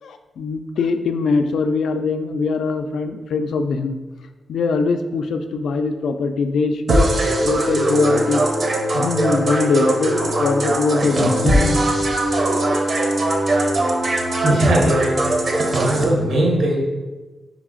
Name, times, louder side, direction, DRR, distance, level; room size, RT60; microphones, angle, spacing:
voice 1, 0.0-4.0 4.5-8.4 8.9-11.8, left 4 dB, 90° left, 8 dB, 0.3 m, -22 dB
sound 1, 6.9-16.0, right 1 dB, 35° right, 0.5 m, -20 dB
voice 2, 14.4-16.8, right 1 dB, 85° right, -1 dB, 1.1 m, -20 dB
4.1 x 3.3 x 3.7 m, 1.2 s
wide cardioid pair, 180°, 0 cm